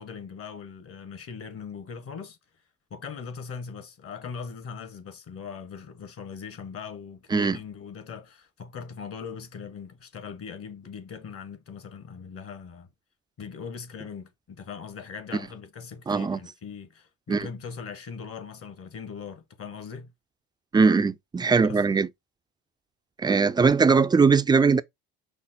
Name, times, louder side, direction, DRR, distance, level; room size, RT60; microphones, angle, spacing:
voice 1, 0.0-2.4 2.9-12.9 13.4-20.1 21.6-21.8, left 6 dB, 45° left, 1.2 m, -40 dB
voice 2, 16.1-16.4 17.3-17.5 20.7-22.1 23.2-24.8, right 5 dB, 15° right, 0.3 m, -20 dB
5.6 x 2.1 x 4.0 m
hypercardioid pair, 70°, 33 cm